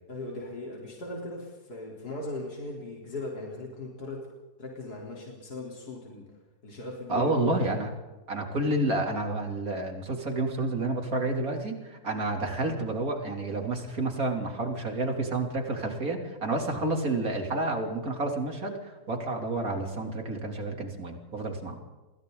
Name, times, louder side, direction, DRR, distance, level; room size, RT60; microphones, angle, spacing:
voice 1, 0.1-4.2 4.6-6.2 6.6-7.5, left 2 dB, 75° left, -2 dB, 4.5 m, -38 dB
voice 2, 7.1-7.9 8.3-21.8, right 2 dB, 60° right, 3 dB, 3.7 m, -30 dB
29.5 x 23.0 x 4.0 m, 1.2 s
omnidirectional pair, 1.7 m